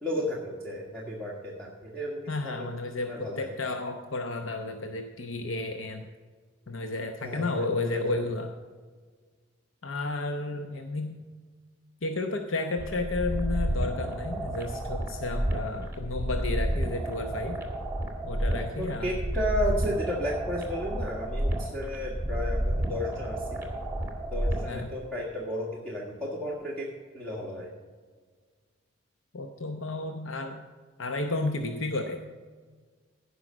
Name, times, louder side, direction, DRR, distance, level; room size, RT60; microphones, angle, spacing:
voice 1, 0.0-2.7 3.0-3.5 7.2-8.3 18.8-23.7 24.3-26.9 27.1-27.7, left 1 dB, 5° left, -5 dB, 1.6 m, -33 dB
voice 2, 2.3-6.1 6.7-8.5 9.8-11.2 12.0-17.6 18.2-19.1 24.7-24.9 29.3-30.6 31.0-32.2, left 2 dB, 75° left, 5 dB, 0.8 m, -32 dB
sound 1, 12.8-24.8, right 1 dB, 10° right, 1.8 m, -31 dB
16.0 x 5.6 x 6.2 m, 1.5 s
head